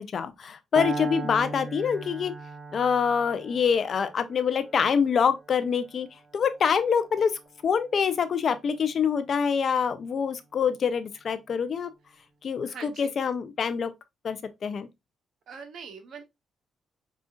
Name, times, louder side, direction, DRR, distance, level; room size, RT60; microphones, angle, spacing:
voice 1, 0.0-2.3 2.7-6.1 6.3-7.3 7.6-11.9 12.4-13.9 14.2-14.9, left 6 dB, 55° left, 0.5 m, -25 dB
Piano, 0.8-8.7, right 2 dB, 30° right, 0.7 m, -39 dB
voice 2, 12.6-13.1 15.5-16.2, right 6 dB, 65° right, 1.0 m, -42 dB
4.9 x 2.4 x 2.4 m
cardioid pair, 85°, 0 cm